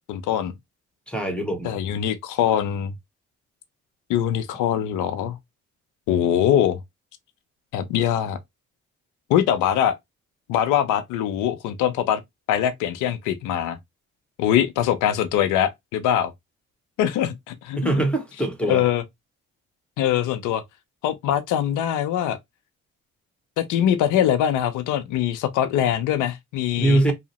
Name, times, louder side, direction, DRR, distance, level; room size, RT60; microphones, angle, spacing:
voice 1, 0.1-0.5 1.6-2.9 4.1-5.4 6.1-6.8 7.7-8.4 9.3-10.0 10.5-12.2 12.5-13.8 14.4-16.3 17.0-18.0 18.7-19.0 20.0-20.6 21.0-22.4 23.6-27.1, left 10 dB, 85° left, 0.5 m, -22 dB
voice 2, 1.1-1.8 17.8-18.8 26.8-27.1, right 2 dB, 5° left, 1.1 m, -23 dB
2.7 x 2.0 x 2.8 m
supercardioid pair, 60°, 30 cm